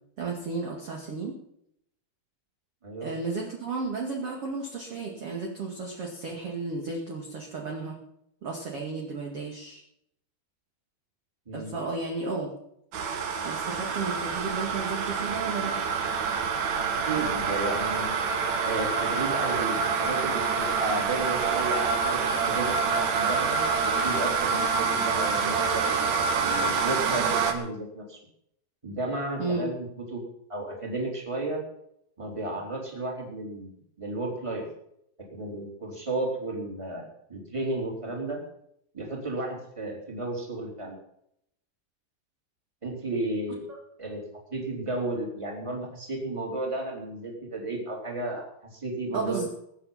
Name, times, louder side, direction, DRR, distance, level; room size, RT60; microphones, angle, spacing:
voice 1, 0.2-1.4 3.0-8.0 8.4-9.8 11.5-12.5 13.4-15.8 29.4-29.7 49.1-49.5, right 4 dB, 40° right, -1 dB, 2.4 m, -33 dB
sound 1, 12.9-27.5, right 5 dB, 55° right, 2.1 m, -27 dB
voice 2, 17.0-18.2 18.6-28.2 28.8-30.2 30.5-31.6 32.2-33.7 34.0-34.6 35.3-38.4 38.9-40.9 42.8-43.6 44.0-44.2 44.5-48.4 48.7-49.5, right 2 dB, 5° right, 0 dB, 3.3 m, -33 dB
21.5 x 8.8 x 5.8 m, 0.74 s
omnidirectional pair, 5.1 m